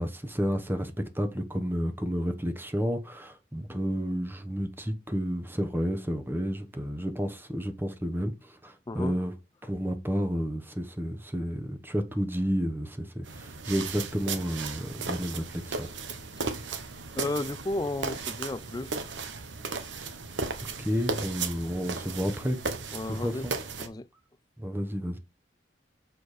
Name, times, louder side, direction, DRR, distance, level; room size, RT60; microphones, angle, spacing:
voice 1, 0.0-9.3 9.6-15.9 20.8-22.6 23.1-23.5 24.6-25.2, equal, 10° right, 1.0 m, -31 dB
voice 2, 8.9-9.2 17.2-19.1 22.9-23.5 23.8-24.1, left 2 dB, 20° left, 0.4 m, -33 dB
sound 1, 13.2-23.9, right 4 dB, 85° right, 1.1 m, -36 dB
7.0 x 4.2 x 5.0 m
head